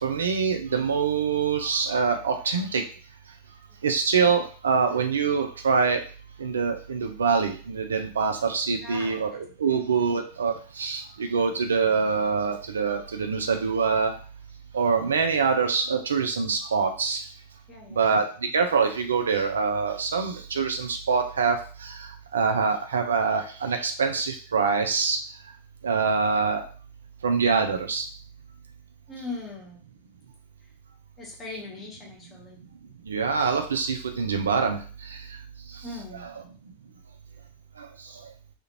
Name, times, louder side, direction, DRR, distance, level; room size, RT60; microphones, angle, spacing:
voice 1, 0.0-2.8 3.8-6.0 6.4-14.1 14.7-17.2 17.9-18.2 18.5-22.0 22.3-25.2 25.8-26.6 27.2-28.1 33.1-34.8 37.8-37.9, right 5 dB, 70° right, 6 dB, 0.4 m, -25 dB
voice 2, 8.8-9.4 9.7-9.8 17.7-18.1 29.1-29.8 31.2-32.6 35.8-36.2, left 3 dB, 20° left, -2 dB, 1.0 m, -40 dB
2.4 x 2.1 x 2.9 m, 0.39 s
figure-of-eight pair, 90°, 0 cm